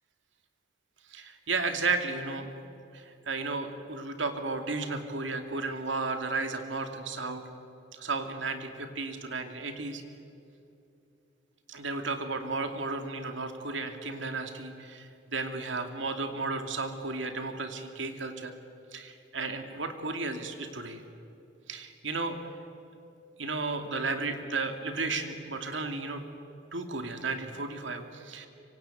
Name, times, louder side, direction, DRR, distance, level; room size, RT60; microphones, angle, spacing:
voice 1, 1.1-2.5 2.9-7.4 7.9-10.0 11.7-18.5 18.9-21.0 21.7-22.4 23.4-26.2 26.7-28.5, right 3 dB, 80° right, 6 dB, 2.6 m, -33 dB
26.0 x 24.5 x 9.2 m, 2.7 s
head